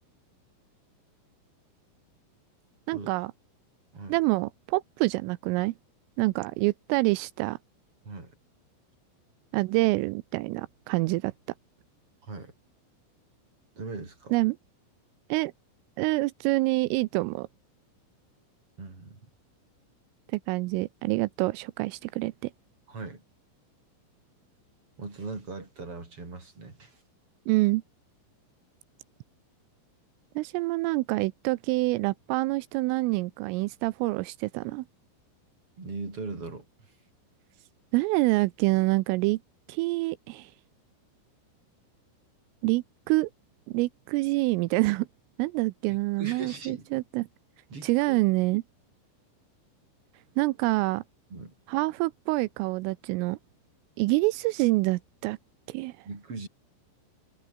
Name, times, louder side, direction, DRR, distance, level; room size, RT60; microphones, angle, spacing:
voice 1, 2.9-3.3 4.1-5.7 6.2-7.6 9.5-11.3 14.3-14.6 15.3-15.5 16.0-17.5 20.3-22.5 27.5-27.8 30.4-34.8 37.9-39.4 39.7-40.5 42.6-43.3 43.7-45.1 45.4-47.3 47.8-48.6 50.4-51.0 51.7-53.4 54.0-55.4 55.7-56.1, right 21 dB, 85° right, 3.3 m, -26 dB
voice 2, 13.8-14.3 18.8-19.2 22.9-23.2 25.0-27.0 35.8-36.7 45.9-46.9 47.7-48.2 51.3-51.5 56.1-56.5, right 3 dB, 25° right, 6.9 m, -39 dB
omnidirectional pair, 5.8 m